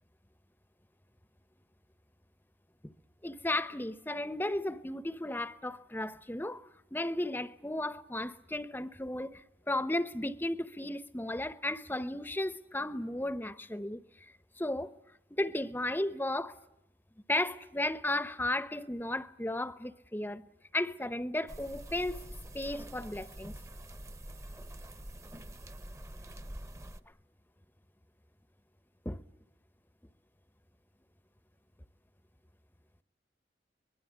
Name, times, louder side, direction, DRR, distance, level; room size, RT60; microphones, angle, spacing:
voice 1, 3.2-14.0 14.6-14.9 15.3-16.6 17.3-20.4 20.7-22.2 22.5-23.5 29.0-29.2, left 1 dB, 10° left, 0.8 m, -34 dB
sound 1, 21.5-27.0, right 1 dB, 15° right, 0.9 m, -46 dB
24.0 x 21.5 x 9.5 m
head